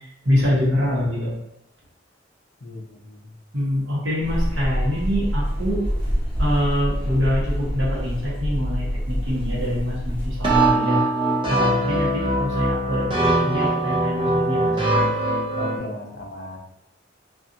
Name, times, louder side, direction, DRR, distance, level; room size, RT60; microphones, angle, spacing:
voice 1, 0.2-1.4 3.5-5.8 6.4-11.0 11.5-14.7, left 1 dB, 85° right, -6 dB, 1.1 m, -25 dB
voice 2, 2.6-3.3 12.0-12.2 15.5-16.6, left 1 dB, 60° left, 0 dB, 0.6 m, -36 dB
sound 1, 4.2-10.7, equal, 10° left, 0.7 m, -26 dB
sound 2, 10.4-15.8, right 1 dB, 25° right, 0.6 m, -21 dB
2.7 x 2.4 x 2.5 m, 0.82 s
head